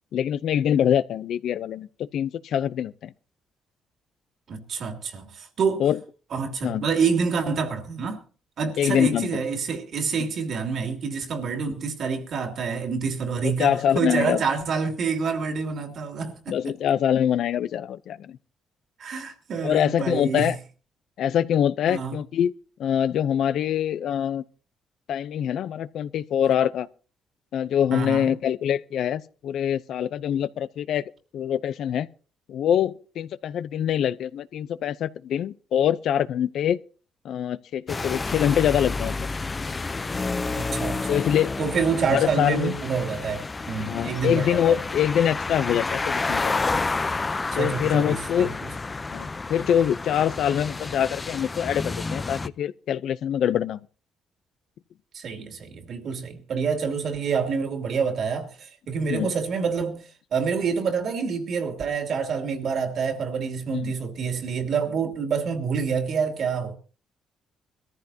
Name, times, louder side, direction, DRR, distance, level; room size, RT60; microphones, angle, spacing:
voice 1, 0.1-3.1 5.8-6.0 6.6-6.8 8.8-9.3 13.4-14.4 16.5-18.4 19.6-20.6 21.2-22.5 22.8-24.4 25.1-26.9 27.5-31.0 31.3-32.1 32.5-36.8 37.2-39.3 41.1-41.5 42.1-42.8 43.8-46.6 47.6-48.5 49.1-53.8 59.1-59.3 63.7-63.9, left 9 dB, 75° left, 0.6 m, -24 dB
voice 2, 4.5-5.8 6.3-8.2 8.6-16.7 19.0-20.5 21.9-22.2 27.9-28.3 40.7-41.2 41.6-44.8 47.5-48.5 55.1-60.0 60.3-66.7, right 5 dB, 65° right, 2.8 m, -27 dB
sound 1, 37.9-52.5, left 3 dB, 25° left, 0.6 m, -30 dB
22.0 x 14.0 x 2.8 m
cardioid pair, 90°, 0 cm